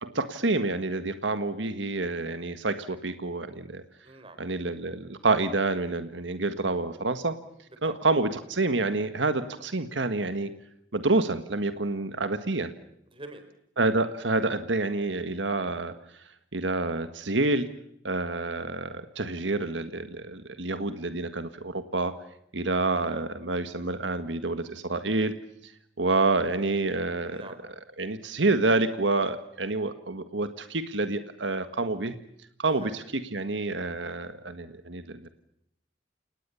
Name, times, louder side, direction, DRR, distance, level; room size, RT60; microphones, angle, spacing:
voice 1, 0.0-3.8 4.4-7.4 7.8-10.5 10.9-12.7 13.8-15.9 16.5-17.7 18.0-22.1 22.5-25.4 25.6-25.7 26.0-27.5 28.0-32.1 32.6-35.3, right 3 dB, 90° right, 10 dB, 1.7 m, -28 dB
voice 2, 4.0-4.4 7.8-8.0 13.1-13.4 23.1-23.2 27.2-27.6 32.7-32.9, right 2 dB, 30° right, 9 dB, 4.6 m, -44 dB
29.0 x 19.5 x 7.0 m, 0.75 s
head